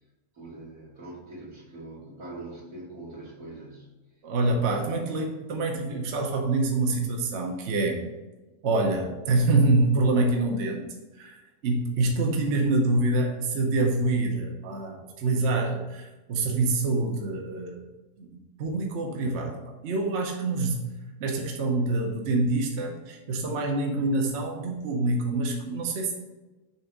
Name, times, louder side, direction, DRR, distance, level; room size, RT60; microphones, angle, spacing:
voice 1, 0.3-3.9 4.5-5.1, right 2 dB, 85° right, -5 dB, 2.7 m, -43 dB
voice 2, 4.2-8.0 8.6-10.8 11.2-17.8 18.2-19.5 19.8-20.8 21.2-26.1, right 2 dB, 55° right, 1 dB, 1.1 m, -26 dB
7.0 x 3.4 x 5.2 m, 1.1 s
omnidirectional pair, 1.6 m